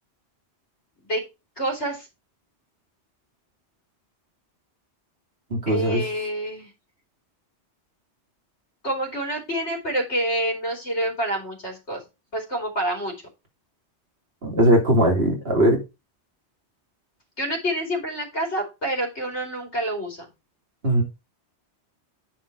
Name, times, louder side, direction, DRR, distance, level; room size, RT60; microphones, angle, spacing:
voice 1, 1.6-2.1 5.7-6.7 8.8-12.0 12.3-13.1 17.4-20.3, right 1 dB, 70° left, 3.4 m, -27 dB
voice 2, 5.5-6.0 14.4-15.8 20.8-21.0, right 1 dB, 55° right, 3.2 m, -19 dB
10.0 x 4.5 x 4.6 m
omnidirectional pair, 1.2 m